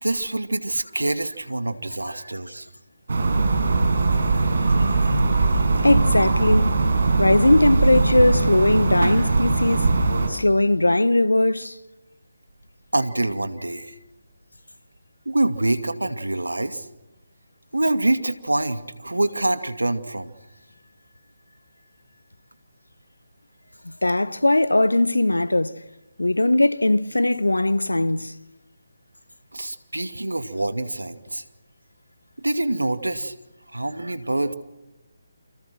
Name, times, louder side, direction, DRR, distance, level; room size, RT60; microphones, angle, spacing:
voice 1, 0.0-2.7 5.5-5.6 10.1-10.2 12.9-13.9 15.3-16.9 17.7-20.3 29.5-31.4 32.4-33.3 33.7-34.5, right 2 dB, 85° right, 2.3 m, -25 dB
sound 1, 3.1-10.3, right 3 dB, 60° right, 6.0 m, -20 dB
voice 2, 5.8-6.8 7.2-9.9 10.3-11.8 23.8-25.8 26.2-28.3, left 2 dB, 85° left, 1.1 m, -19 dB
30.0 x 25.5 x 6.2 m
figure-of-eight pair, 150°, 0 cm